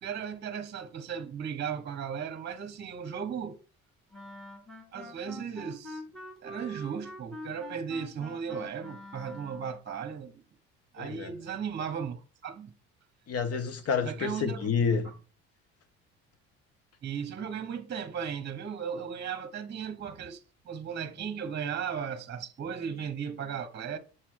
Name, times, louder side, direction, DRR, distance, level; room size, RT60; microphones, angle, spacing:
voice 1, 0.0-3.6 4.9-6.0 6.4-10.4 10.9-12.7 14.0-14.7 15.0-15.1 17.0-24.0, right 7 dB, 35° right, 1.1 m, -36 dB
Wind instrument woodwind instrument, 4.1-9.8, equal, ahead, 2.0 m, -45 dB
voice 2, 11.0-11.3 13.3-15.1, left 6 dB, 50° left, 1.4 m, -29 dB
7.7 x 4.2 x 4.7 m
supercardioid pair, 80°, 30 cm